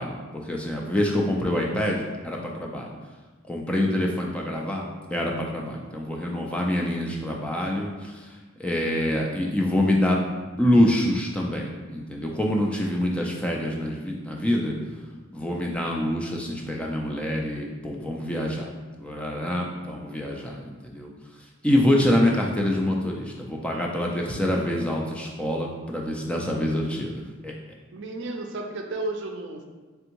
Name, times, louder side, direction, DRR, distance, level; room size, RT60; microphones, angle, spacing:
voice 1, 0.0-2.9 3.5-4.8 5.1-8.3 8.6-10.2 10.5-14.8 15.3-18.7 19.0-21.1 21.6-27.5, left 1 dB, 5° left, -1 dB, 0.3 m, -26 dB
voice 2, 27.9-29.6, right 2 dB, 60° right, 3 dB, 0.4 m, -33 dB
3.4 x 3.4 x 2.9 m, 1.3 s
head